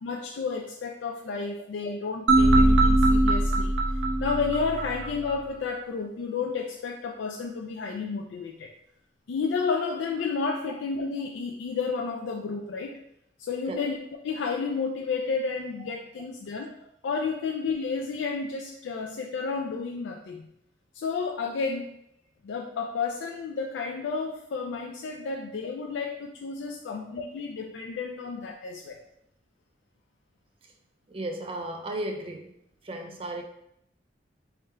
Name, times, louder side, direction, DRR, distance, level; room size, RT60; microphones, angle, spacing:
voice 1, 0.0-3.8 4.2-8.7 9.3-13.0 13.4-14.0 14.2-16.7 17.0-20.5 20.9-22.0 22.4-29.0, left 5 dB, 85° left, 2 dB, 0.3 m, -31 dB
sound 1, 2.3-5.3, right 1 dB, 75° right, 0.5 m, -21 dB
voice 2, 31.1-32.6 32.8-33.4, right 1 dB, 30° right, 3 dB, 0.5 m, -35 dB
3.6 x 2.1 x 4.3 m, 0.77 s
head